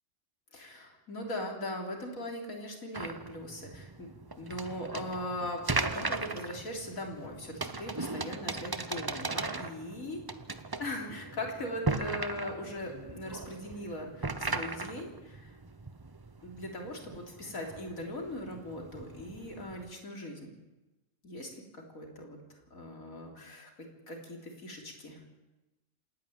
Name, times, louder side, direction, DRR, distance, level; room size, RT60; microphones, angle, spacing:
voice 1, 0.5-4.1 4.4-10.2 10.8-15.6 16.4-20.5 21.2-22.4 22.7-23.7 24.1-25.2, left 1 dB, 85° left, 1 dB, 3.9 m, -40 dB
sound 1, 2.9-19.9, right 3 dB, 25° right, 0.6 m, -38 dB
27.5 x 10.5 x 9.2 m, 1.1 s
omnidirectional pair, 1.4 m